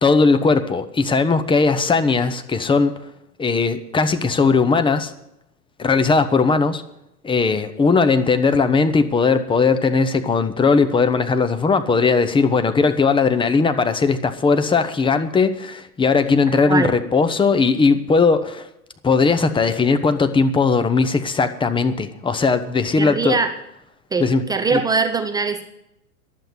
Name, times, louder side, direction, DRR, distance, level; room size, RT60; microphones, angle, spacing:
voice 1, 0.0-3.0 3.4-5.1 5.8-6.8 7.2-18.7 19.0-23.4 24.2-24.4 24.7-24.8, left 4 dB, 10° left, 10 dB, 0.8 m, -18 dB
voice 2, 23.0-23.5 24.1-25.6, right 4 dB, 10° right, 7 dB, 0.4 m, -21 dB
11.5 x 7.8 x 9.7 m, 0.86 s
hypercardioid pair, 95°, 46 cm